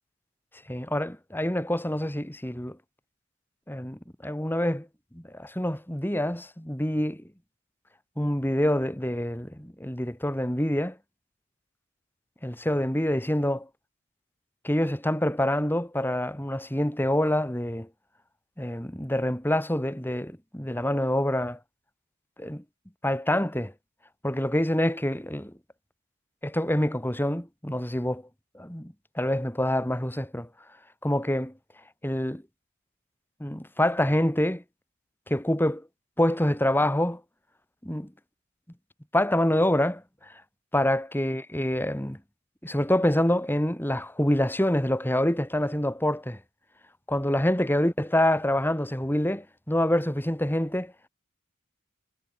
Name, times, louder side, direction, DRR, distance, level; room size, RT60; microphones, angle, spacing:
voice 1, 0.7-2.8 3.7-4.9 5.1-7.2 8.2-11.0 12.4-13.7 14.6-17.9 18.6-21.6 22.4-22.6 23.0-23.7 24.2-25.5 26.4-28.2 28.5-30.5 31.0-31.5 32.0-32.4 33.4-34.6 35.3-35.8 36.2-37.2 37.8-38.1 39.1-40.0 40.7-42.2 42.6-46.4 47.1-50.9, left 1 dB, 10° left, 2.8 m, -26 dB
head